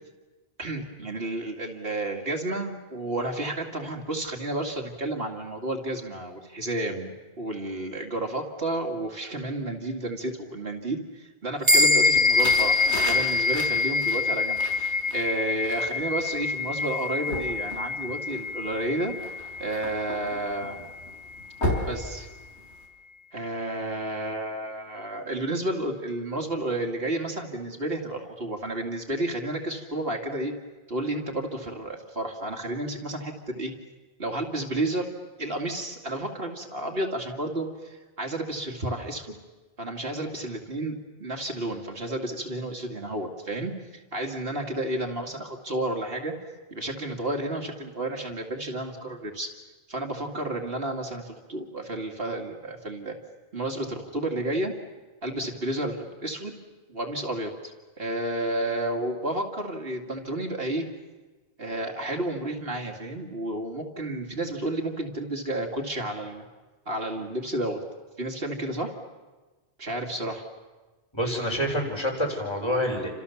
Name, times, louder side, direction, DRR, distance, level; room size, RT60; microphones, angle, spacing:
voice 1, 0.6-19.2 19.6-20.9 21.9-22.3 23.3-30.5 30.9-33.7 34.2-35.1 35.4-39.4 39.8-46.3 46.7-49.5 49.9-53.2 53.5-54.7 55.2-56.6 56.9-60.9 61.6-66.4 66.9-67.8 68.2-68.9 69.8-70.4, right 1 dB, 60° right, 2 dB, 2.5 m, -31 dB
sound 1, 11.7-21.4, left 4 dB, 25° right, 1.8 m, -25 dB
sound 2, 12.1-22.8, left 1 dB, 75° left, 5.7 m, -36 dB
voice 2, 71.1-73.1, equal, 25° left, 0 dB, 5.4 m, -27 dB
30.0 x 26.5 x 7.1 m, 1.3 s
omnidirectional pair, 1.2 m